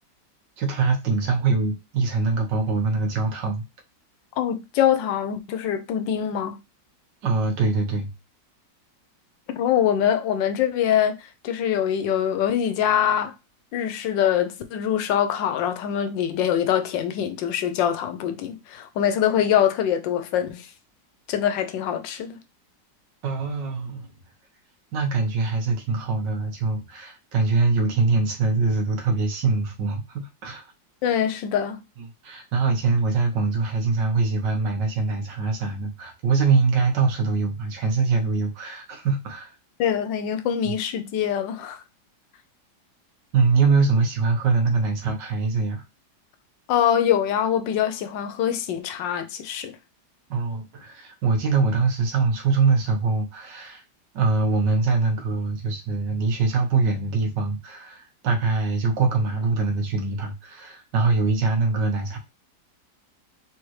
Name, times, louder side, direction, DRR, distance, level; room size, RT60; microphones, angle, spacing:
voice 1, 0.6-3.6 7.2-8.1 23.2-24.1 24.9-30.7 32.2-39.5 43.3-45.8 50.3-53.8 54.1-62.2, right 4 dB, 80° right, 1.7 m, -23 dB
voice 2, 4.4-6.6 9.6-11.2 11.4-13.3 13.7-20.7 21.3-22.4 31.0-31.8 39.8-41.8 46.7-49.7, left 9 dB, 90° left, 1.4 m, -24 dB
3.7 x 3.4 x 3.1 m
omnidirectional pair, 1.9 m